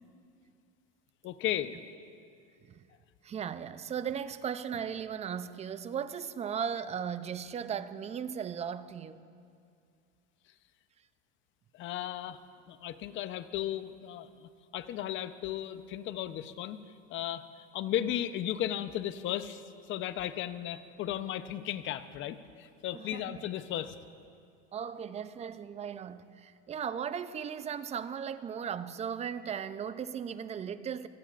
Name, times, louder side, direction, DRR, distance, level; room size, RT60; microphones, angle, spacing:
voice 1, 1.2-1.7 11.7-12.4 12.7-16.8 17.1-19.6 19.9-24.0, left 12 dB, 40° left, 0.8 m, -35 dB
voice 2, 3.2-9.2 22.9-23.4 24.7-31.1, right 8 dB, 20° right, 0.5 m, -37 dB
26.5 x 17.5 x 2.5 m
supercardioid pair, 125°, 29 cm